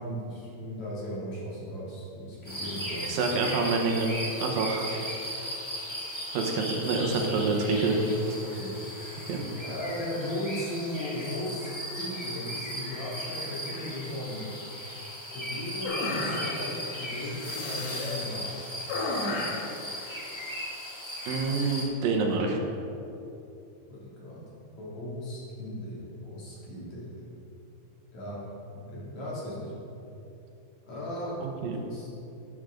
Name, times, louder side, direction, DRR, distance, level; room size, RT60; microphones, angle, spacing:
voice 1, 0.0-3.2 4.9-5.0 8.4-8.7 9.6-14.5 15.3-18.6 23.9-24.4 24.8-27.3 28.1-28.4 28.9-29.7 30.9-31.4 31.6-32.1, left 1 dB, 50° left, -7 dB, 3.8 m, -36 dB
sound 1, 2.4-21.8, equal, 15° left, 0.9 m, -37 dB
voice 2, 3.1-4.1 4.4-4.9 6.3-8.0 8.3-8.4 9.3-9.4 21.2-22.6 31.4-31.8, right 4 dB, 70° right, 2 dB, 2.6 m, -27 dB
sound 2, 15.8-16.8 17.4-18.3 18.9-19.7, left 2 dB, 80° left, 3.5 m, -33 dB
12.0 x 10.5 x 3.8 m, 2.8 s
omnidirectional pair, 4.6 m